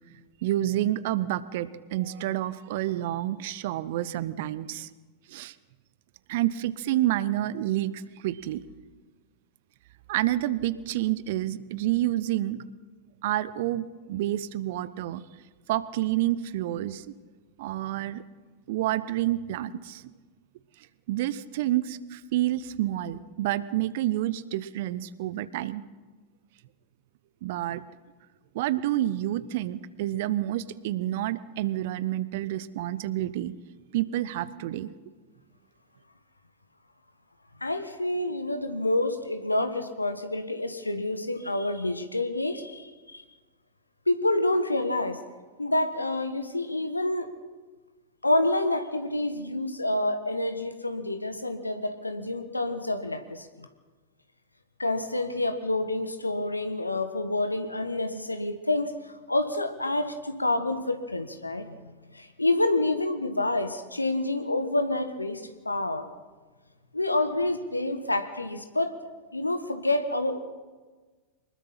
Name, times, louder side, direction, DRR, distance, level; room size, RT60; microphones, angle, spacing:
voice 1, 0.4-4.9 5.3-5.5 6.3-8.6 10.1-12.6 13.2-15.2 15.7-17.1 17.6-18.2 18.7-20.1 21.1-25.8 27.4-27.8 28.5-33.5 33.9-34.9, right 14 dB, 50° right, 17 dB, 0.9 m, -29 dB
voice 2, 37.6-43.2 44.1-45.2 45.6-47.3 48.2-53.7 54.8-61.8 62.1-66.1 66.9-68.9 69.3-70.4, left 2 dB, 85° left, 9 dB, 1.3 m, -28 dB
24.0 x 21.0 x 5.8 m, 1.4 s
figure-of-eight pair, 90°, 0 cm